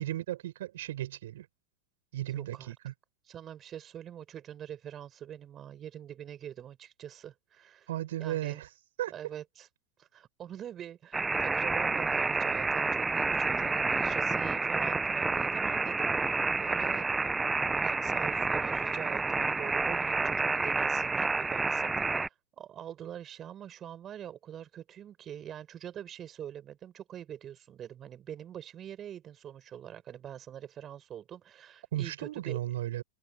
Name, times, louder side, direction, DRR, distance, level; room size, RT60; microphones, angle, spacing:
voice 1, 0.0-1.5 2.1-2.9 7.9-8.7 9.0-9.1 31.9-33.0, right 13 dB, 60° right, 7.2 m, -35 dB
voice 2, 2.3-2.7 3.3-7.9 8.2-8.6 9.1-9.7 10.0-17.3 17.8-32.6, right 10 dB, 30° right, 6.8 m, -44 dB
sound 1, 11.1-22.3, right 3 dB, 10° right, 1.0 m, -29 dB
figure-of-eight pair, 85°, 0 cm